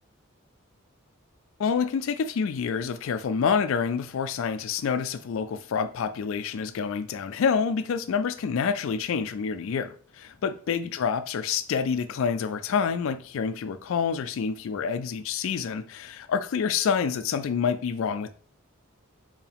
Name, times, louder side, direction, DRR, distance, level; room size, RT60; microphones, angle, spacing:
voice 1, 1.6-18.3, left 6 dB, 70° left, 0.4 m, -27 dB
4.5 x 2.9 x 3.4 m
head